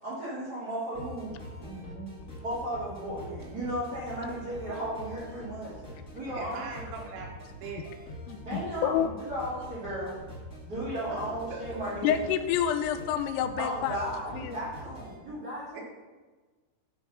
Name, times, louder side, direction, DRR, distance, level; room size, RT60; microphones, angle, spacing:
voice 1, 0.0-5.7 6.1-7.1 8.4-10.1 10.6-12.3 13.6-15.8, right 1 dB, 75° right, -9 dB, 0.9 m, -35 dB
sound 1, 0.9-15.2, left 1 dB, 45° left, 0.9 m, -44 dB
voice 2, 6.3-8.0 11.5-11.8 15.7-15.8, right 4 dB, 90° right, -1 dB, 4.4 m, -41 dB
voice 3, 8.3-9.1 11.0-11.1 12.0-14.0 14.3-14.6, left 9 dB, 85° left, 9 dB, 3.2 m, -28 dB
12.5 x 4.3 x 5.6 m, 1.3 s
omnidirectional pair, 5.9 m